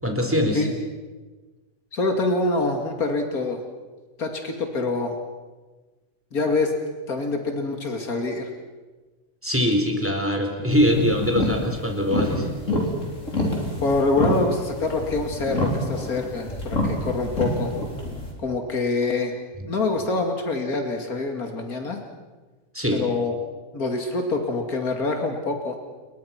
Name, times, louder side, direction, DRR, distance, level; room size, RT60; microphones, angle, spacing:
voice 1, 0.0-0.7 9.4-12.5 22.7-23.0, equal, 10° right, 3 dB, 4.1 m, -22 dB
voice 2, 1.9-3.6 4.2-5.2 6.3-6.7 7.1-8.5 13.8-17.7 18.4-19.3 19.7-22.0 22.9-23.3 23.7-25.8, left 3 dB, 90° left, 4 dB, 2.9 m, -25 dB
sound 1, 10.7-18.3, left 1 dB, 60° left, 5.2 m, -27 dB
29.5 x 22.5 x 5.9 m, 1.3 s
omnidirectional pair, 1.5 m